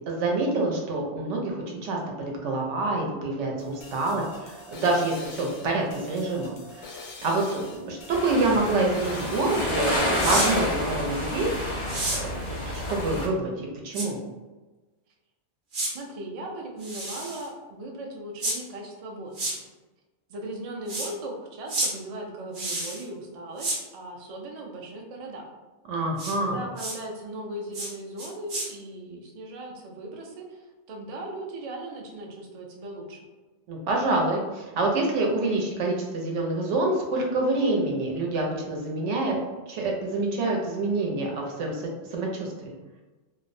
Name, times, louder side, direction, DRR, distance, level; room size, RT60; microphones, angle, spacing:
voice 1, 0.1-6.9 7.2-12.4 12.7-13.5 13.8-14.2 25.9-26.6 33.7-39.4 39.7-42.7, right 2 dB, 90° right, 0 dB, 0.9 m, -27 dB
sound 1, 3.6-10.0, left 3 dB, 85° left, 0.9 m, -44 dB
sound 2, 8.1-13.3, left 1 dB, 45° left, 0.4 m, -29 dB
sound 3, 10.1-10.5 11.9-12.2 13.9-14.1 15.7-15.9 16.8-17.5 18.4-18.6 19.3-19.5 20.9-21.1 21.7-21.9 22.5-23.0 23.6-23.8 26.2-26.3 26.8-27.0 27.7-27.9 28.2-28.7, right 2 dB, 55° right, 0.7 m, -30 dB
voice 2, 15.9-19.4 20.3-25.5 26.3-33.3, right 1 dB, 70° right, 0 dB, 0.3 m, -38 dB
2.4 x 2.0 x 2.5 m, 1.2 s
omnidirectional pair, 1.2 m